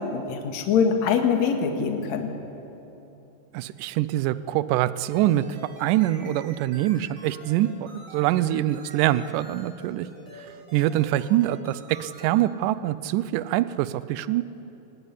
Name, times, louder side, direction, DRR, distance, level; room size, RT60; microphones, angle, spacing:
voice 1, 0.0-2.3, left 6 dB, 55° left, 4 dB, 2.8 m, -23 dB
voice 2, 3.5-5.4 5.8-10.1 10.4-14.4, right 14 dB, 75° right, 15 dB, 2.1 m, -24 dB
sound 1, 5.1-12.4, right 1 dB, 45° right, 6.9 m, -46 dB
23.0 x 19.5 x 9.9 m, 2.9 s
omnidirectional pair, 4.1 m